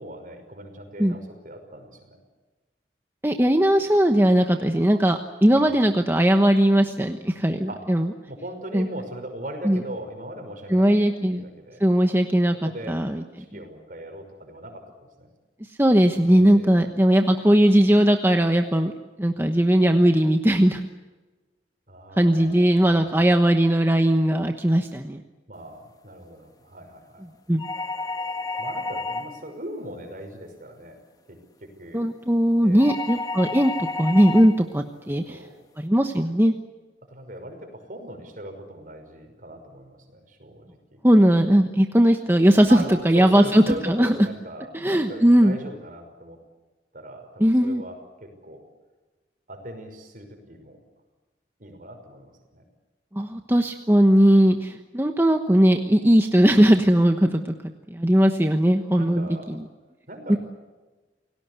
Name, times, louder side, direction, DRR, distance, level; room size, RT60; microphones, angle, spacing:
voice 1, 0.0-2.2 5.5-5.8 7.7-7.8 8.3-11.0 11.3-11.8 12.6-13.0 13.4-15.3 16.2-16.9 21.9-23.4 25.5-27.3 28.6-31.0 31.3-32.0 32.6-32.9 35.1-35.6 37.1-41.0 42.7-46.4 46.9-48.6 49.5-50.8 51.6-52.6 59.0-59.6 60.1-60.4, right 1 dB, 50° right, 5 dB, 5.7 m, -39 dB
voice 2, 3.2-8.1 8.7-8.9 9.6-9.8 10.7-11.4 11.8-13.2 15.8-18.9 19.2-20.9 22.2-25.2 27.5-27.7 31.9-35.4 35.8-36.5 41.0-44.1 44.7-45.5 47.4-47.8 53.1-57.5 57.9-59.6 60.3-60.4, equal, 15° right, 5 dB, 1.1 m, -19 dB
sound 1, 27.6-29.5 32.8-34.6, left 3 dB, 20° left, 1.5 m, -31 dB
29.0 x 18.0 x 8.2 m, 1.3 s
head